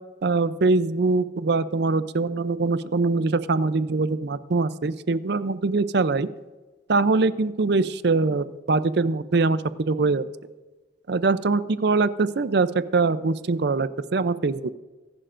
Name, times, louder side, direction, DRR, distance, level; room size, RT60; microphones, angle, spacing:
voice 1, 0.2-6.3 6.9-10.2 11.1-14.7, right 3 dB, 60° right, 14 dB, 0.5 m, -23 dB
24.0 x 11.0 x 2.6 m, 1.2 s
head